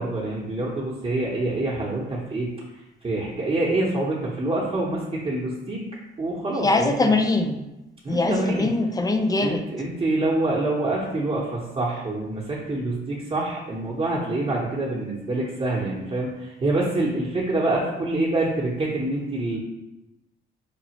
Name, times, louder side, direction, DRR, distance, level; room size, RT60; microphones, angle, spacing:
voice 1, 0.0-2.5 3.0-5.8 6.2-7.1 8.0-8.7 9.4-19.6, right 2 dB, 30° right, -5 dB, 0.8 m, -26 dB
voice 2, 6.6-7.6 8.1-9.6, left 2 dB, 20° left, 6 dB, 0.4 m, -22 dB
5.2 x 2.4 x 2.9 m, 0.98 s
cardioid pair, 90°, 20 cm